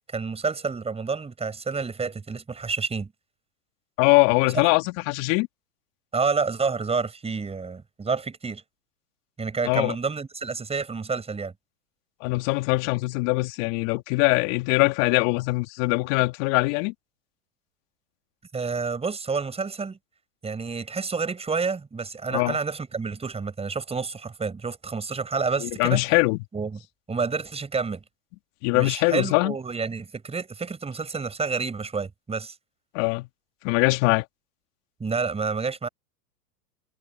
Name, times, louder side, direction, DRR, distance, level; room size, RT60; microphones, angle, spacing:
voice 1, 0.1-3.1 4.5-4.6 6.1-8.6 9.4-11.5 18.5-20.0 20.4-26.0 26.5-26.8 27.1-28.0 28.7-32.5 35.0-35.9, right 4 dB, 10° right, 6.4 m, -29 dB
voice 2, 4.0-5.5 9.6-9.9 12.2-16.9 22.3-22.6 25.6-26.4 28.6-29.5 32.9-33.3 33.6-34.2, left 27 dB, 50° left, 2.9 m, -22 dB
hypercardioid pair, 120°, 47 cm